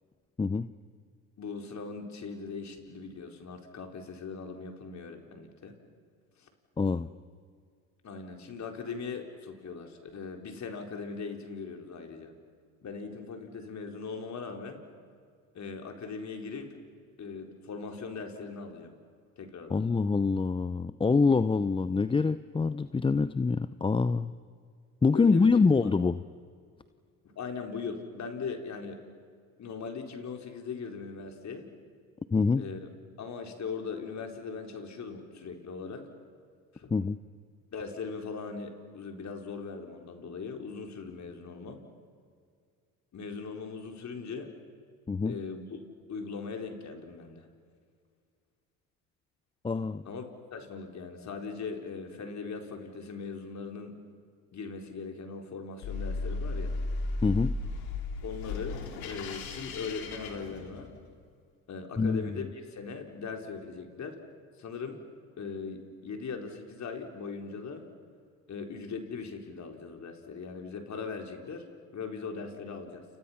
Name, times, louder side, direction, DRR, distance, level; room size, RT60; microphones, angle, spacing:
voice 1, 0.4-0.7 6.8-7.1 19.7-24.3 25.0-26.2 32.3-32.6 36.9-37.2 45.1-45.4 49.6-50.0 57.2-57.6 62.0-62.2, left 4 dB, 15° left, 14 dB, 0.6 m, -25 dB
voice 2, 1.4-5.8 6.4-6.5 8.0-12.3 12.8-14.8 15.5-16.7 17.2-18.9 19.4-19.8 25.1-25.6 27.2-29.0 29.6-31.7 32.6-32.9 33.2-36.1 36.7-36.9 37.7-41.8 43.1-44.5 45.2-45.6 46.1-47.5 50.1-53.9 54.5-56.8 58.2-60.9 61.7-64.2 64.6-65.0 65.4-67.8 68.5-71.7 71.9-73.0, left 5 dB, 45° left, 3 dB, 4.3 m, -40 dB
sound 1, 55.8-61.1, left 3 dB, 65° left, 3.7 m, -35 dB
29.5 x 29.5 x 5.8 m, 2.1 s
hypercardioid pair, 75°, 39 cm